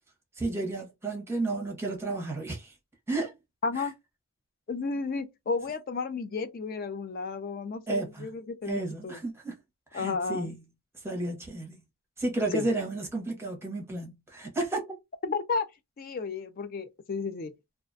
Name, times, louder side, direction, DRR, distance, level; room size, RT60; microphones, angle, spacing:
voice 1, 0.4-2.7 3.1-3.3 3.7-3.9 7.9-8.3 8.6-9.5 9.9-10.6 11.0-11.8 12.2-14.9, right 2 dB, 10° right, 0.7 m, -32 dB
voice 2, 3.6-3.9 4.7-9.2 9.9-10.5 12.5-12.7 15.2-15.7 16.0-17.5, left 4 dB, 40° left, 0.3 m, -32 dB
2.4 x 2.1 x 2.5 m
head